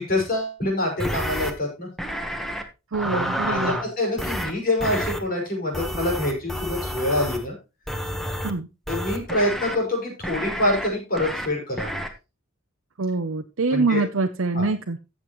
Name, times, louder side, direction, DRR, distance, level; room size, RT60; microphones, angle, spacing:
voice 1, 0.0-1.9 3.1-7.6 8.9-12.0 13.7-14.0 14.5-14.7, left 1 dB, 45° left, 0 dB, 5.7 m, -26 dB
sound 1, 1.0-1.5 2.0-2.6 2.9-3.9 4.2-4.5 4.8-5.2 5.7-7.4 7.9-8.5 8.9-9.8 10.2-10.9 11.2-11.5 11.8-12.1, equal, ahead, 1.3 m, -29 dB
voice 2, 2.9-3.8 8.4-8.7 13.0-15.0, right 3 dB, 70° right, 5 dB, 0.7 m, -25 dB
14.5 x 7.5 x 3.1 m, 0.28 s
head